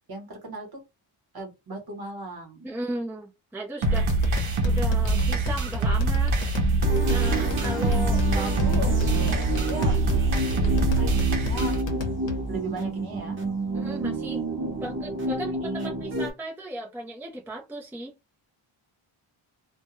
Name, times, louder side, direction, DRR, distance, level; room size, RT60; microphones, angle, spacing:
voice 1, 0.1-0.8 1.3-2.7 8.3-10.0 10.3-11.8 12.5-13.4 15.3-16.1, right 2 dB, 45° right, 1.1 m, -37 dB
voice 2, 2.6-4.1 4.6-6.4 7.1-8.6 13.7-14.4 14.8-15.5 15.8-18.1, right 1 dB, 5° right, 0.4 m, -36 dB
sound 1, 3.8-12.6, left 1 dB, 60° left, 0.8 m, -32 dB
sound 2, 3.8-11.8, right 2 dB, 70° right, 0.7 m, -24 dB
sound 3, 6.8-16.3, right 2 dB, 25° right, 0.8 m, -30 dB
2.2 x 2.2 x 3.0 m
wide cardioid pair, 150°, 49 cm